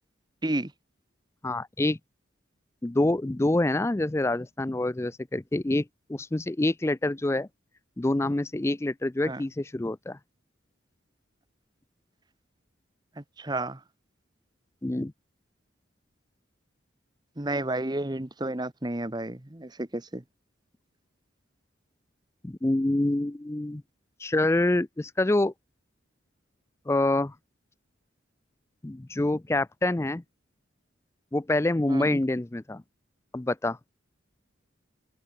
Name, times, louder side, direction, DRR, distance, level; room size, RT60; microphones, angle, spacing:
voice 1, 1.4-2.0 2.8-7.5 8.0-10.2 14.8-15.1 22.4-23.8 24.2-25.5 26.9-27.3 28.8-30.2 31.3-32.8 33.3-33.8, left 2 dB, 15° left, 0.4 m, -26 dB
voice 2, 13.2-13.8 17.4-20.2 31.9-32.2, right 1 dB, 20° right, 1.1 m, -31 dB
head